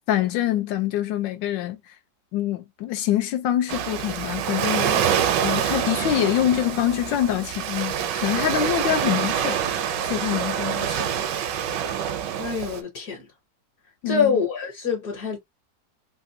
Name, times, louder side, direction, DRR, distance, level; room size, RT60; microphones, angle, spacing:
voice 1, 0.1-1.8 2.3-5.1 5.4-9.6 10.1-11.1 14.0-14.4, left 12 dB, 90° left, 1.4 m, -25 dB
Waves surf, 3.7-12.8, right 8 dB, 80° right, 1.2 m, -26 dB
voice 2, 12.4-13.2 14.0-15.4, left 5 dB, 60° left, 1.3 m, -25 dB
3.4 x 2.4 x 2.6 m
omnidirectional pair, 1.9 m